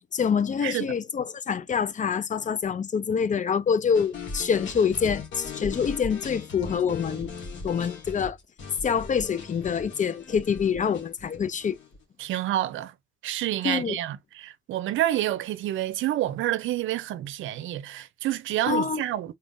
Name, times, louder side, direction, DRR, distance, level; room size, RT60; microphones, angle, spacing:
voice 1, 0.1-7.3 7.6-8.4 8.8-11.8 13.6-14.0 18.7-19.0, left 6 dB, 40° left, 0.6 m, -26 dB
sound 1, 3.9-12.0, left 3 dB, 70° left, 2.2 m, -39 dB
voice 2, 12.2-12.9 13.2-19.3, right 13 dB, 80° right, 0.6 m, -28 dB
4.2 x 3.6 x 2.6 m
cardioid pair, 90°, 20 cm